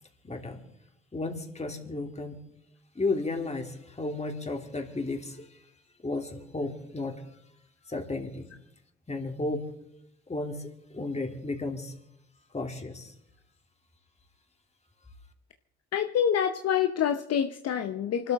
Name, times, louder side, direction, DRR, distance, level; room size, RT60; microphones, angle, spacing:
voice 1, 0.2-0.6 1.1-2.4 2.9-5.6 6.0-7.3 7.9-8.5 9.1-9.7 10.3-12.0 12.5-13.1, left 2 dB, 20° left, 3 dB, 2.9 m, -33 dB
voice 2, 15.9-18.3, left 8 dB, 55° left, 6 dB, 0.9 m, -26 dB
28.0 x 12.5 x 3.7 m, 0.79 s
hypercardioid pair, 55°, 29 cm